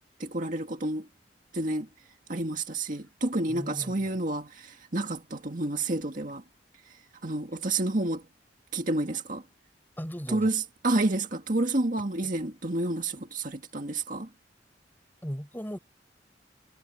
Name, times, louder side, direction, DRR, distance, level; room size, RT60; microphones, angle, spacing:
voice 1, 0.2-1.1 1.5-1.9 2.3-6.4 7.2-8.2 8.7-9.4 10.3-14.3, right 2 dB, 45° right, 1.9 m, -29 dB
voice 2, 3.5-4.2 10.0-10.5 15.2-15.8, equal, 10° left, 6.2 m, -37 dB
head